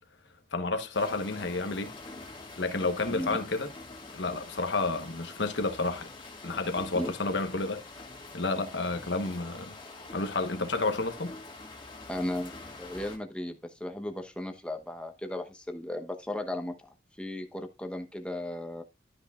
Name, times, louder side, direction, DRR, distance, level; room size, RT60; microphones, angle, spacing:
voice 1, 0.5-1.9 2.6-3.7 4.1-6.1 6.4-7.8 8.3-9.8 10.1-11.3, left 3 dB, 70° left, 1.0 m, -30 dB
sound 1, 0.9-13.2, left 3 dB, 25° left, 1.8 m, -46 dB
voice 2, 3.1-3.4 6.9-7.1 12.1-12.5 12.8-18.8, left 1 dB, 5° left, 0.9 m, -36 dB
12.5 x 5.9 x 2.3 m
head